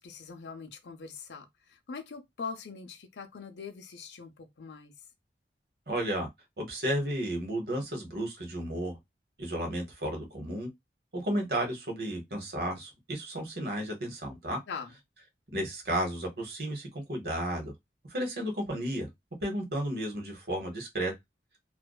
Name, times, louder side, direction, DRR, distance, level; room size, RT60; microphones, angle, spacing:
voice 1, 0.0-4.9 14.7-15.0, left 5 dB, 85° left, 0.5 m, -42 dB
voice 2, 5.9-6.3 6.6-9.0 9.4-10.7 11.1-14.6 15.5-17.7 18.1-19.1 19.4-21.1, right 1 dB, 60° right, 0.9 m, -33 dB
2.5 x 2.2 x 2.2 m
head